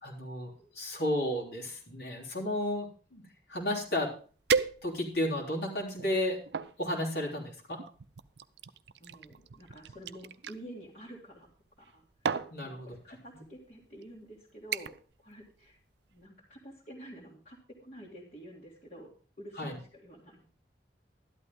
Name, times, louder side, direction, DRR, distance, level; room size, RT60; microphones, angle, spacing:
voice 1, 0.0-4.1 4.8-6.4 6.8-7.8 12.5-13.2 19.6-19.8, left 1 dB, 75° left, -3 dB, 3.4 m, -33 dB
sound 1, 4.5-5.3 5.9-6.7 7.7-10.6 11.7-11.9 12.2-12.6 13.4-13.6 14.0-14.3 14.7-15.1 15.4-15.8 16.2-16.3, right 5 dB, 80° right, 0.5 m, -34 dB
voice 2, 9.0-11.5 11.8-12.0 12.6-15.8 16.1-19.1 19.4-20.5, equal, 45° left, -5 dB, 2.3 m, -49 dB
12.5 x 11.5 x 3.7 m, 0.41 s
head